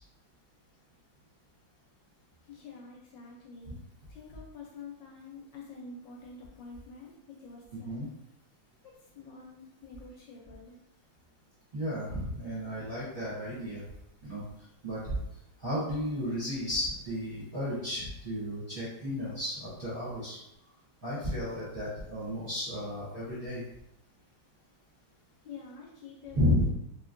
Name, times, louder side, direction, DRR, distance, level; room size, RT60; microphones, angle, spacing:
voice 1, 2.4-3.8 4.1-8.1 8.8-10.8 25.4-26.7, left 4 dB, 75° left, -2 dB, 1.1 m, -48 dB
voice 2, 11.7-13.8 14.2-14.4 14.8-15.1 15.6-20.4 21.0-23.6 26.3-26.7, left 1 dB, 35° right, -11 dB, 1.0 m, -33 dB
3.1 x 2.8 x 2.5 m, 0.82 s
omnidirectional pair, 2.2 m